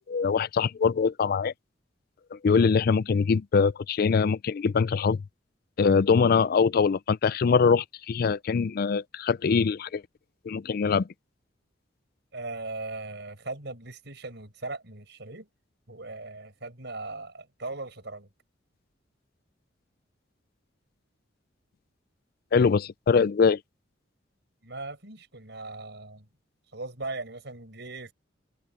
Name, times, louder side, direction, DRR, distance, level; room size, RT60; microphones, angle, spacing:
voice 1, 0.1-1.5 2.3-5.2 5.8-10.0 10.5-11.1 22.5-23.6, left 5 dB, 50° left, 0.4 m, -23 dB
voice 2, 12.3-15.5 15.9-18.3 24.6-26.3 26.7-28.1, right 2 dB, 60° right, 6.1 m, -39 dB
head